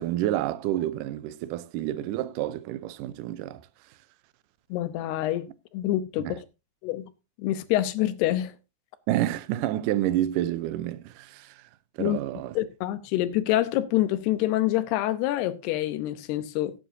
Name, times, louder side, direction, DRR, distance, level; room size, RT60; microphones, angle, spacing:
voice 1, 0.0-3.6 6.2-6.4 9.1-11.6 12.0-12.6, right 13 dB, 80° right, 1.9 m, -29 dB
voice 2, 4.7-5.5 5.7-6.4 6.8-7.1 7.4-8.5 12.0-12.2 12.6-16.7, left 14 dB, 85° left, 3.0 m, -26 dB
17.0 x 9.2 x 2.7 m
omnidirectional pair, 4.6 m